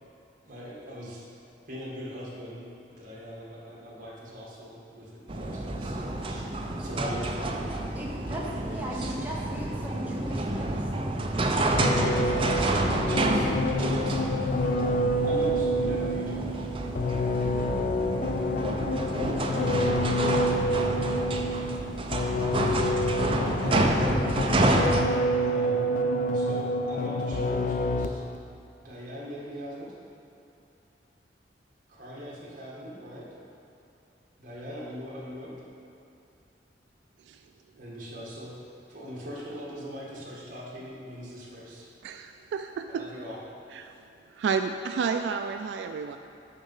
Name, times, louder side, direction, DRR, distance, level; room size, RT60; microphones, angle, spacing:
voice 1, 0.4-1.3 1.6-2.6 2.9-6.4 6.7-7.8 8.6-9.2 12.8-14.4 14.8-16.7 19.2-19.6 23.6-24.9 25.4-26.0 26.3-28.2 28.8-29.9 31.9-33.3 34.4-35.5 37.8-38.5 38.9-41.9 42.9-43.4, equal, 50° right, -5 dB, 1.8 m, -41 dB
sound 1, 5.3-25.0, right 2 dB, 30° right, 0.5 m, -29 dB
voice 2, 7.9-11.3, equal, 10° right, -4 dB, 1.0 m, -38 dB
sound 2, 11.7-28.4, equal, 45° left, 0.3 m, -28 dB
voice 3, 42.0-43.1 43.7-43.9 44.3-46.2, right 5 dB, 80° right, 7 dB, 0.3 m, -31 dB
6.9 x 6.3 x 5.5 m, 2.8 s
head